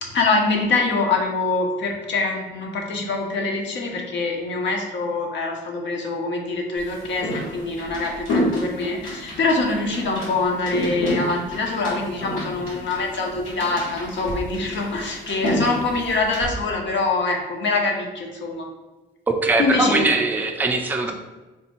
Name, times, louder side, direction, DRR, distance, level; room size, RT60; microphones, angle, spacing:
voice 1, 0.0-18.7 19.6-20.1, left 3 dB, 65° left, 1 dB, 0.7 m, -24 dB
sound 1, 6.8-16.5, left 1 dB, 85° left, 1.2 m, -30 dB
voice 2, 19.3-21.1, right 3 dB, 10° right, 3 dB, 0.4 m, -21 dB
3.3 x 2.1 x 4.2 m, 1.2 s
cardioid pair, 90°, 20 cm